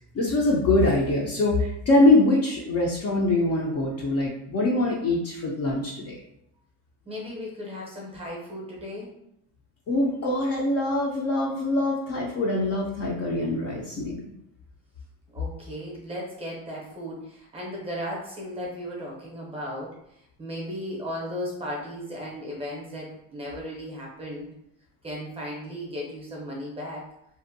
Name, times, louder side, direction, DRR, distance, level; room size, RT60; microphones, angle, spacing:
voice 1, 0.1-6.2 9.9-14.2, left 2 dB, 40° left, -3 dB, 0.4 m, -23 dB
voice 2, 7.0-9.2 15.3-24.5 25.0-27.1, equal, 15° right, -4 dB, 0.6 m, -36 dB
2.5 x 2.1 x 2.5 m, 0.78 s
cardioid pair, 150°, 41 cm